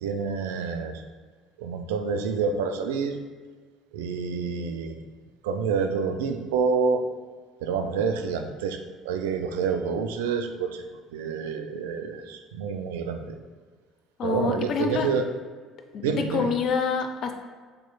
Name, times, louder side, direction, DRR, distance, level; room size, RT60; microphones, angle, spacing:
voice 1, 0.0-0.9 1.6-3.2 3.9-4.9 5.4-7.0 7.6-8.8 9.1-10.8 11.1-13.4 14.2-15.2 16.0-16.5, right 5 dB, 70° right, 6 dB, 0.3 m, -28 dB
voice 2, 14.2-15.1 15.9-17.3, left 5 dB, 50° left, 5 dB, 0.5 m, -27 dB
6.3 x 3.0 x 2.2 m, 1.5 s
figure-of-eight pair, 55°, 0 cm